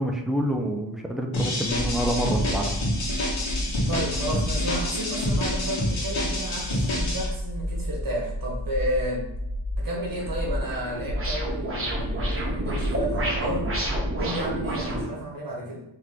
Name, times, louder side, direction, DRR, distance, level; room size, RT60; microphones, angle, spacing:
voice 1, 0.0-2.7, right 1 dB, ahead, 1 dB, 0.4 m, -27 dB
sound 1, 1.3-7.3, left 1 dB, 85° left, 1.3 m, -28 dB
sound 2, 1.6-14.2, equal, 55° left, 0.9 m, -31 dB
voice 2, 3.9-9.3 9.8-13.7 14.2-15.8, right 1 dB, 45° right, -2 dB, 1.3 m, -32 dB
sound 3, 10.1-15.0, right 1 dB, 30° right, 1.0 m, -30 dB
3.6 x 2.8 x 3.5 m, 0.86 s
wide cardioid pair, 90°, 46 cm